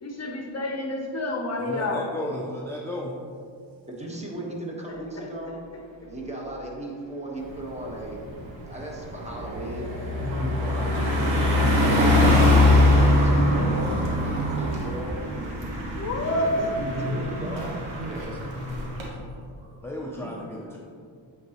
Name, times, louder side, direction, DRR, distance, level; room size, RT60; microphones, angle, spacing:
voice 1, 0.0-2.1 5.2-5.3 16.0-16.5 20.1-20.4, left 2 dB, 35° left, 2 dB, 0.8 m, -29 dB
voice 2, 1.7-3.2 19.8-20.8, left 1 dB, 5° left, -2 dB, 0.5 m, -34 dB
voice 3, 3.9-5.6 6.1-8.2 8.6-9.9 10.4-11.6 11.9-13.9 14.2-15.2 16.2-18.3, right 1 dB, 15° right, -2 dB, 1.3 m, -36 dB
sound 1, 4.9-12.0, right 1 dB, 40° right, 1.1 m, -41 dB
Car passing by, 7.5-7.7 8.1-19.1, left 1 dB, 90° right, 1.3 m, -23 dB
voice 4, 10.2-12.3 16.8-19.8, left 1 dB, 60° right, -1 dB, 1.3 m, -35 dB
8.3 x 3.8 x 3.0 m, 2.2 s
cardioid pair, 85°, 46 cm